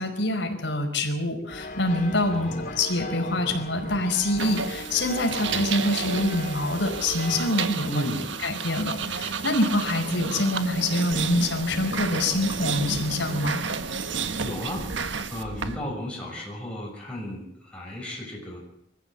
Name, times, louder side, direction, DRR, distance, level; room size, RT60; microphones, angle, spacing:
voice 1, 0.0-8.1 8.4-13.6, left 1 dB, 75° left, 3 dB, 5.0 m, -26 dB
sound 1, 1.5-7.6, left 1 dB, 45° left, 2.4 m, -37 dB
voice 2, 2.3-2.8 7.9-8.3 14.4-14.9 15.3-18.6, equal, 5° left, -3 dB, 6.6 m, -34 dB
sound 2, 4.4-15.8, right 5 dB, 75° right, 1.4 m, -31 dB
23.5 x 14.5 x 8.0 m, 0.76 s
head